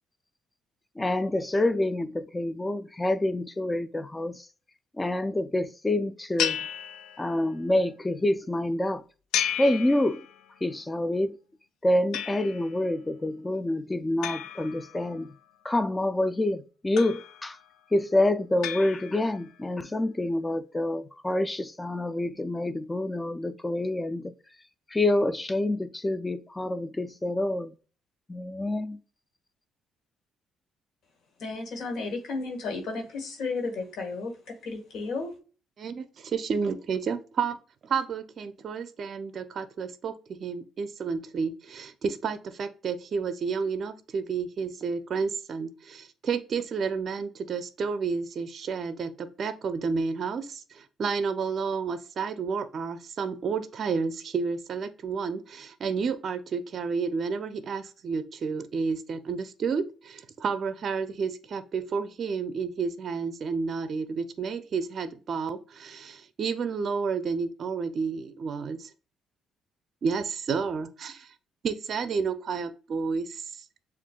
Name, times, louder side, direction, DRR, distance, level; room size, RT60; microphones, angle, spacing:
voice 1, 1.0-4.5 5.0-6.6 7.2-9.0 9.6-10.2 10.6-11.4 11.8-15.3 15.6-17.6 17.9-24.3 24.9-27.7 28.3-29.0, left 1 dB, 15° left, 0.4 m, -27 dB
sound 1, 6.4-7.6 9.3-10.6 12.1-12.8 14.2-15.4 17.0-17.7 18.6-19.5, left 9 dB, 85° left, 0.4 m, -34 dB
voice 2, 31.4-34.3 34.6-35.3, left 3 dB, 65° left, 1.5 m, -33 dB
voice 3, 35.8-37.6 37.8-68.9 70.0-71.3 71.6-73.4, right 5 dB, 50° right, 0.5 m, -31 dB
7.2 x 2.5 x 2.3 m
cardioid pair, 95°, 0 cm